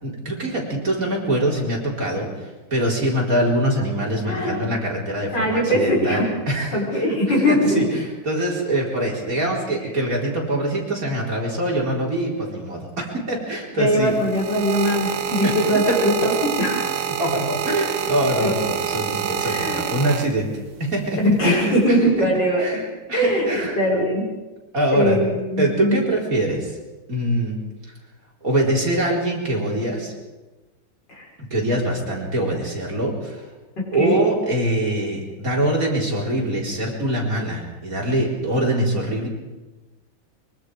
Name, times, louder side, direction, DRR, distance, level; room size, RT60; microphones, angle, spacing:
voice 1, 0.0-7.2 7.5-14.1 15.4-15.5 15.9-16.0 17.2-20.5 20.8-22.3 22.6-23.8 24.7-25.2 25.6-26.8 27.1-27.6 28.4-30.1 31.5-33.5 33.9-39.3, right 1 dB, 40° right, -2 dB, 4.6 m, -24 dB
voice 2, 5.3-6.3 6.7-7.9 13.8-16.9 18.4-18.7 19.4-19.9 21.2-22.8 23.1-24.2 24.9-26.0 31.1-31.3 33.8-34.2, equal, 55° left, -3 dB, 6.6 m, -21 dB
sound 1, 13.9-20.7 21.5-21.9, right 9 dB, 85° right, 1.9 m, -27 dB
24.0 x 23.5 x 5.0 m, 1.2 s
omnidirectional pair, 2.2 m